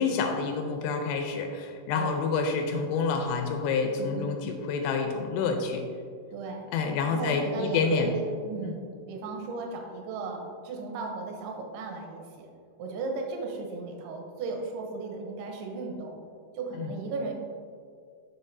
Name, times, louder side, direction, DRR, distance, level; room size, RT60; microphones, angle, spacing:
voice 1, 0.0-5.8 6.7-8.1 8.6-8.8 16.8-16.9, left 5 dB, 90° left, 4 dB, 2.7 m, -28 dB
voice 2, 1.9-2.3 4.0-4.4 6.3-6.7 7.1-12.5 12.8-16.2 16.5-17.3, right 3 dB, 80° right, 2 dB, 2.8 m, -35 dB
7.4 x 6.1 x 2.6 m, 2.2 s
omnidirectional pair, 4.8 m